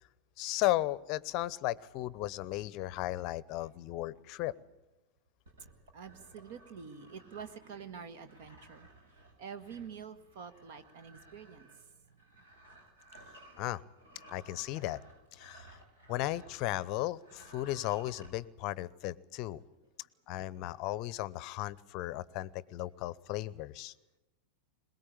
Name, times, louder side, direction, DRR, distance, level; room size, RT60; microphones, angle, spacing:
voice 1, 0.4-4.5 13.6-13.8 14.3-15.0 15.3-15.8 16.1-19.6 20.3-23.9, left 16 dB, 40° left, 22 dB, 0.7 m, -35 dB
sound 1, 5.4-16.9 17.2-18.3, right 1 dB, 70° right, 6.6 m, -57 dB
voice 2, 5.9-8.9 9.4-11.7 12.3-12.4, right 6 dB, 50° right, 11 dB, 1.7 m, -47 dB
22.5 x 20.5 x 8.6 m, 1.0 s
figure-of-eight pair, 90°, 0 cm